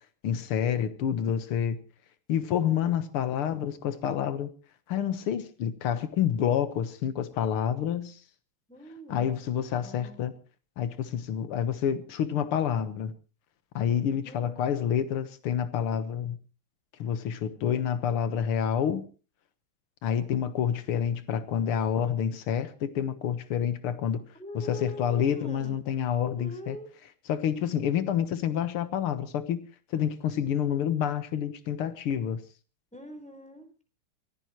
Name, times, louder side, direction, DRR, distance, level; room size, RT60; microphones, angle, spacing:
voice 1, 0.2-1.8 2.3-4.5 4.9-8.2 9.1-10.3 10.8-13.1 13.7-16.4 17.0-19.1 20.0-24.2 24.5-26.8 27.3-32.4, left 9 dB, 80° left, 2.1 m, -28 dB
voice 2, 8.7-9.4 9.8-10.2 14.2-14.7 24.3-25.8 26.2-26.9 32.9-33.8, left 1 dB, 5° left, 4.1 m, -43 dB
25.0 x 15.5 x 3.1 m
omnidirectional pair, 2.4 m